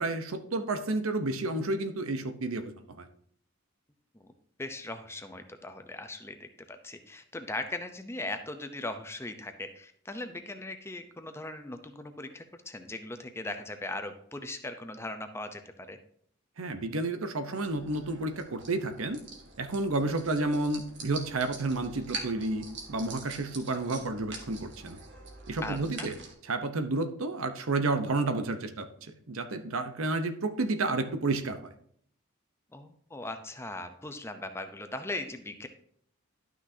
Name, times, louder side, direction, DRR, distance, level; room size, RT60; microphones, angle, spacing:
voice 1, 0.0-2.7 3.0-3.1 16.6-19.2 19.6-25.0 25.5-26.2 26.4-31.6, right 2 dB, 75° right, 9 dB, 0.8 m, -31 dB
voice 2, 4.6-16.0 25.6-26.1 32.7-35.7, left 2 dB, 10° left, 7 dB, 0.7 m, -39 dB
sound 1, 17.6-26.3, right 3 dB, 55° right, 1.7 m, -45 dB
12.0 x 6.1 x 2.8 m, 0.65 s
head